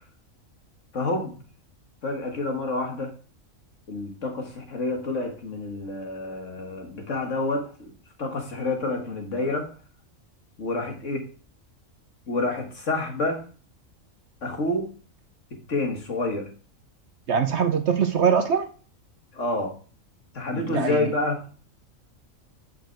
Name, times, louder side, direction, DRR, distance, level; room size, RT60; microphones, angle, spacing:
voice 1, 0.9-1.4 2.0-3.1 3.9-7.7 8.2-9.7 10.6-11.3 12.3-13.4 14.4-14.9 15.5-16.5 19.3-19.7 20.3-21.4, left 2 dB, 60° left, 3 dB, 2.2 m, -28 dB
voice 2, 17.3-18.7 20.5-21.1, right 7 dB, 60° right, 8 dB, 0.9 m, -23 dB
8.4 x 6.2 x 4.7 m, 0.39 s
omnidirectional pair, 1.4 m